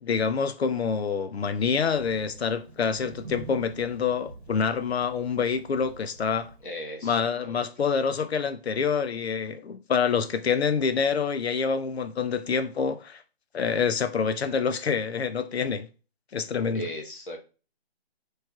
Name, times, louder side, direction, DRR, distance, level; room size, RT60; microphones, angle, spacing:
voice 1, 0.0-6.5 7.0-13.2 13.5-15.9 16.3-16.9, left 6 dB, 80° left, 0.6 m, -27 dB
Thunder, 1.7-6.7, right 3 dB, 50° right, 0.9 m, -46 dB
voice 2, 6.6-7.7 16.7-17.4, equal, 55° left, 1.1 m, -37 dB
4.4 x 3.2 x 2.4 m
hypercardioid pair, 180°, 31 cm